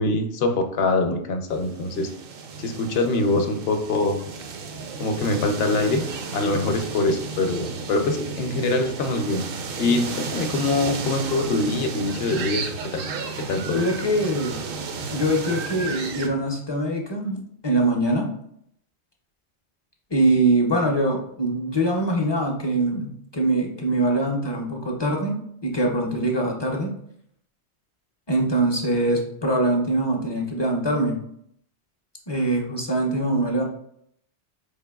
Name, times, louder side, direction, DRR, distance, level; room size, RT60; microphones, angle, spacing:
voice 1, 0.0-2.1 2.6-4.2 5.0-6.0 6.3-9.4 9.8-12.7 12.9-13.0 13.5-13.8, left 2 dB, 65° left, 6 dB, 0.8 m, -24 dB
sound 1, 1.5-16.3, right 4 dB, 65° right, 0.7 m, -33 dB
voice 2, 13.7-14.6 15.1-18.3 20.1-26.9 28.3-31.2 32.3-33.6, right 1 dB, 35° left, 1 dB, 0.5 m, -23 dB
4.4 x 3.5 x 2.2 m, 0.71 s
omnidirectional pair, 1.2 m